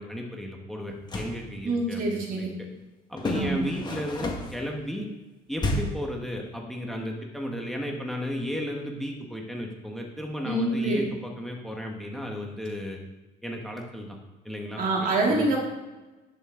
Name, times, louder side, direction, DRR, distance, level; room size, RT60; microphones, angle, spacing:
voice 1, 0.0-2.5 3.1-5.1 5.5-13.0 13.4-14.2 14.4-14.8 15.3-15.5, equal, ahead, 1 dB, 1.4 m, -34 dB
sound 1, 0.9-1.4 3.2-4.6 5.6-6.1, left 2 dB, 25° left, 1.8 m, -30 dB
voice 2, 1.6-2.5 3.3-3.6 10.4-11.0 14.8-15.6, right 2 dB, 55° right, -2 dB, 3.0 m, -25 dB
11.0 x 8.3 x 3.8 m, 1.1 s
cardioid pair, 110°, 17 cm